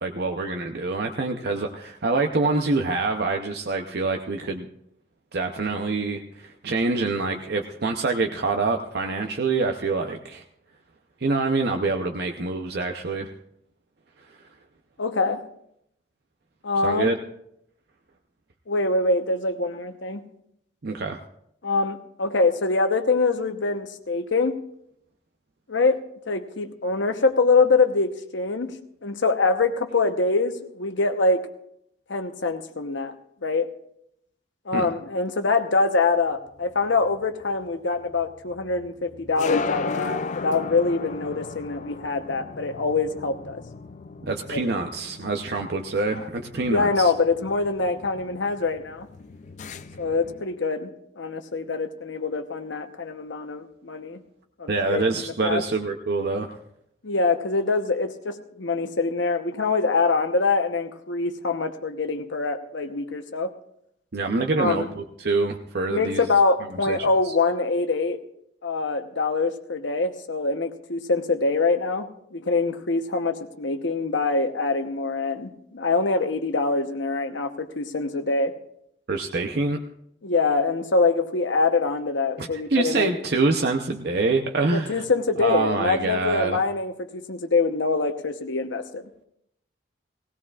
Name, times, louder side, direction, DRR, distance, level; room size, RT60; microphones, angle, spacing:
voice 1, 0.0-4.7 5.3-10.4 11.2-13.3 16.8-17.2 20.8-21.2 34.7-34.9 44.2-47.1 54.7-56.6 64.1-66.2 66.9-67.3 79.1-79.8 82.4-85.0 85.4-86.6, right 3 dB, 55° right, 4 dB, 0.6 m, -26 dB
voice 2, 15.0-15.4 16.6-17.1 18.7-20.2 21.6-24.6 25.7-26.0 26.3-28.7 29.0-31.4 32.1-33.1 33.4-33.7 34.7-43.6 44.5-44.7 46.6-49.1 50.0-50.9 51.2-54.2 54.6-55.6 57.0-63.5 64.6-64.9 65.9-68.2 68.6-78.5 80.2-83.1 84.7-89.0, left 3 dB, 70° left, 7 dB, 0.9 m, -24 dB
sound 1, 36.4-50.4, left 4 dB, 40° left, 0.4 m, -36 dB
19.0 x 17.0 x 2.4 m, 0.75 s
head